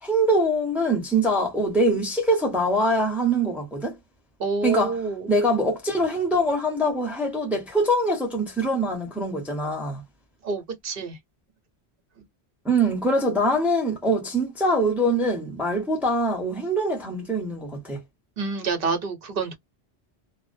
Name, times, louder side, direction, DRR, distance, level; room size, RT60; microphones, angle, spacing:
voice 1, 0.0-4.0 4.6-5.0 5.3-10.0 12.6-18.0, right 1 dB, ahead, 0.8 m, -23 dB
voice 2, 4.4-5.3 10.4-11.2 18.4-19.6, right 4 dB, 60° right, 1.0 m, -27 dB
2.5 x 2.1 x 2.5 m
omnidirectional pair, 1.1 m